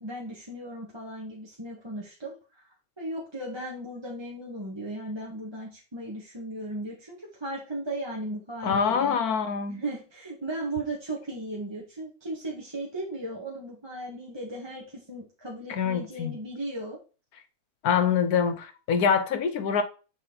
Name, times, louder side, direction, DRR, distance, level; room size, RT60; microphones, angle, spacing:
voice 1, 0.0-2.6 3.0-9.1 9.7-17.0, right 1 dB, 20° right, 1.5 m, -36 dB
voice 2, 8.6-9.8 15.7-16.4 17.8-19.8, left 6 dB, 75° left, 1.4 m, -25 dB
6.5 x 4.4 x 3.9 m
omnidirectional pair, 1.6 m